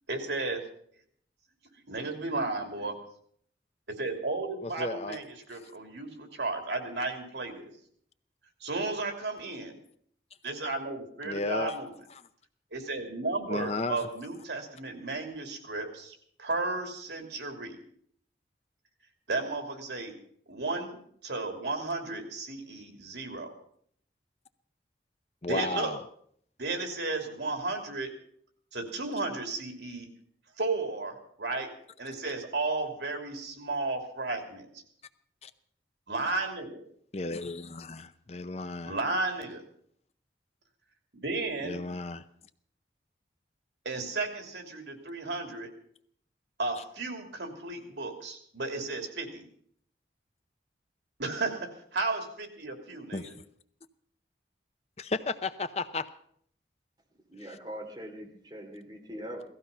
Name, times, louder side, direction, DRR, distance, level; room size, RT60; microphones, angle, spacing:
voice 1, 0.1-0.6 1.9-3.0 3.9-7.7 8.6-9.8 10.4-11.9 12.7-17.8 19.3-20.1 20.5-23.5 25.5-25.9 26.6-28.1 28.7-30.1 30.6-31.7 32.0-34.8 36.1-36.8 38.9-39.6 41.1-41.8 43.8-45.7 46.6-49.4 51.2-53.3, right 3 dB, 85° right, 5 dB, 3.0 m, -34 dB
voice 2, 4.6-5.2 5.5-5.6 11.2-11.7 13.5-14.1 25.4-26.0 35.4-35.5 37.1-39.0 41.6-42.2 53.1-53.3 55.0-56.1, left 3 dB, 35° left, 11 dB, 0.6 m, -34 dB
voice 3, 57.3-59.4, equal, 25° right, 1 dB, 2.7 m, -42 dB
17.5 x 15.0 x 5.5 m, 0.63 s
head